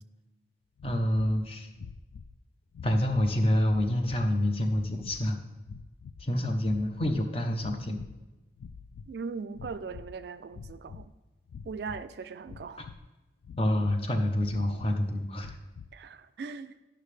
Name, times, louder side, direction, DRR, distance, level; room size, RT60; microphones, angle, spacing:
sound 1, 0.8-1.4 1.7-2.4 2.7-3.3 3.7-4.3 4.7-5.2 5.6-6.3 6.6-7.3 7.6-8.2 8.5-9.1 9.5-10.2 10.5-11.1 11.5-12.0 12.5-13.1 13.4-14.0 14.4-14.9 15.4-16.0, left 5 dB, 85° left, 0.3 m, -46 dB
voice 1, 0.8-1.7 2.8-5.4 6.2-8.0 12.8-12.9 13.6-15.6, left 1 dB, 30° left, 5 dB, 0.7 m, -27 dB
voice 2, 9.1-11.1 11.6-12.8 15.9-16.8, right 5 dB, 65° right, 12 dB, 0.3 m, -39 dB
10.0 x 5.8 x 3.2 m, 1.1 s
head